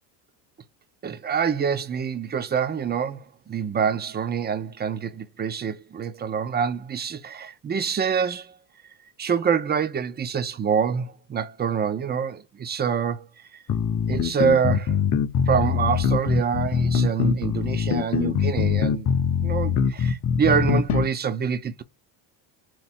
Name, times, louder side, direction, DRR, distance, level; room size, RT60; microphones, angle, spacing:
voice 1, 1.0-8.6 9.2-13.3 13.5-13.6 14.1-15.0 15.5-19.1 19.4-21.8, right 7 dB, 20° right, 0.6 m, -26 dB
sound 1, 13.7-21.1, left 7 dB, 35° left, 0.8 m, -23 dB
4.5 x 2.7 x 4.2 m
supercardioid pair, 95°, 49 cm